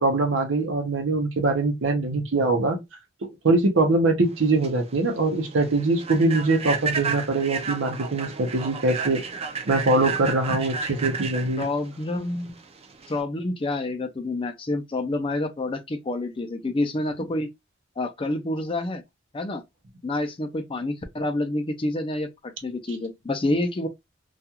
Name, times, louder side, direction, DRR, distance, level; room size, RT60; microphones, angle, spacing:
voice 1, 0.0-2.8 3.2-9.2 9.7-11.7, right 2 dB, 85° right, 0.7 m, -23 dB
Human voice / Train, 4.3-13.2, right 5 dB, 30° right, 0.4 m, -32 dB
voice 2, 11.6-12.6 13.1-17.5 18.0-19.0 19.3-19.6 20.0-23.9, left 2 dB, 30° left, 0.4 m, -28 dB
2.4 x 2.3 x 2.8 m
head